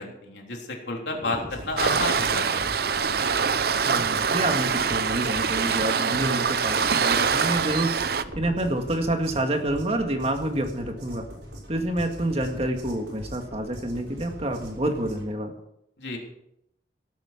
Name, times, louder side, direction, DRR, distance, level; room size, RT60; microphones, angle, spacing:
voice 1, 0.0-2.7 16.0-16.2, left 2 dB, 80° left, 0 dB, 3.6 m, -31 dB
sound 1, 1.1-15.3, equal, 85° right, 5.7 m, -41 dB
Waves surf, 1.8-8.2, right 6 dB, 60° right, 0.7 m, -24 dB
voice 2, 3.8-8.0 8.4-11.2 11.7-15.5, right 1 dB, 35° right, 4 dB, 2.0 m, -28 dB
18.0 x 8.8 x 6.0 m, 0.79 s
head